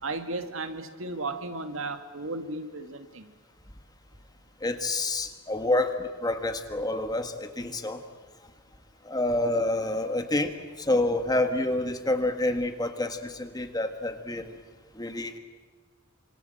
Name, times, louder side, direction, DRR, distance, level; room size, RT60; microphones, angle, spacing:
voice 1, 0.0-3.3, right 2 dB, 70° right, 8 dB, 2.1 m, -35 dB
voice 2, 4.6-8.0 9.1-14.5 15.0-15.4, left 2 dB, 20° left, 7 dB, 1.7 m, -28 dB
26.5 x 26.0 x 7.9 m, 1.4 s
head